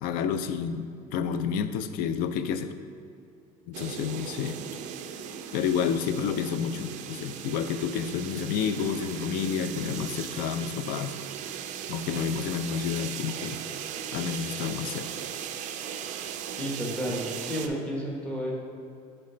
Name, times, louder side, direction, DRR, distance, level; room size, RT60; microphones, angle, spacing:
voice 1, 0.0-2.7 3.7-4.6 5.5-11.2 11.9-13.6 14.1-15.1, left 7 dB, 55° left, 10 dB, 0.4 m, -30 dB
sound 1, 3.7-17.7, right 8 dB, 45° right, 0.4 m, -38 dB
voice 2, 16.5-18.5, equal, 5° left, -4 dB, 1.0 m, -32 dB
7.6 x 3.3 x 4.4 m, 2.5 s
cardioid pair, 155°, 18 cm